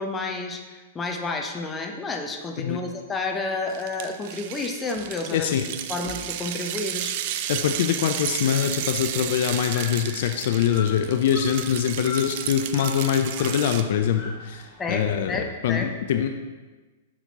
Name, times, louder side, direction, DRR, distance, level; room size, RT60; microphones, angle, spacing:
voice 1, 0.0-5.5 5.9-7.1 14.8-16.2, left 3 dB, 15° left, 3 dB, 0.7 m, -30 dB
sound 1, 3.7-13.8, right 10 dB, 50° right, 0.4 m, -33 dB
sound 2, 4.9-5.4 6.0-6.7 9.1-9.3 9.6-9.7 10.2-10.5 11.0-11.9 12.3-12.4, right 4 dB, 25° right, 1.8 m, -47 dB
voice 2, 5.3-5.6 7.5-16.4, left 9 dB, 60° left, 7 dB, 0.3 m, -24 dB
sound 3, 7.4-15.4, left 4 dB, 40° left, 1.3 m, -43 dB
5.9 x 5.8 x 2.8 m, 1.2 s
hypercardioid pair, 105°, 0 cm